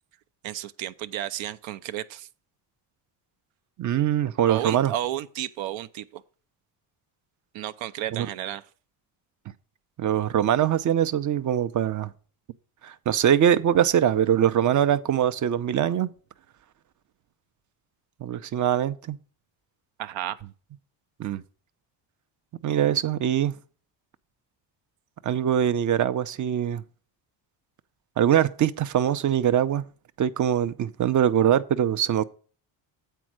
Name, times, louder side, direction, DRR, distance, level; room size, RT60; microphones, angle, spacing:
voice 1, 0.4-2.3 4.5-6.2 7.5-8.7 20.0-20.4, right 12 dB, 75° right, 0.7 m, -32 dB
voice 2, 3.8-4.9 8.1-8.3 10.0-12.1 13.1-16.1 18.2-19.2 21.2-21.4 22.6-23.5 25.2-26.8 28.2-29.8 30.2-32.2, right 10 dB, 40° right, 0.6 m, -23 dB
8.3 x 4.5 x 6.2 m
cardioid pair, 95°, 48 cm